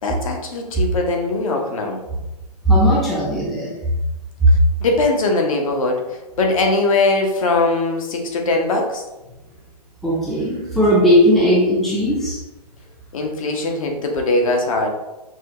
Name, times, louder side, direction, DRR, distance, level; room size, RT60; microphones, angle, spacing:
voice 1, 0.0-2.0 4.8-9.0 13.1-14.9, left 2 dB, 55° left, 2 dB, 0.9 m, -20 dB
voice 2, 2.7-3.7 4.4-4.5 10.0-12.4, equal, ahead, -6 dB, 0.5 m, -16 dB
6.0 x 2.2 x 2.9 m, 1.0 s
hypercardioid pair, 140°, 21 cm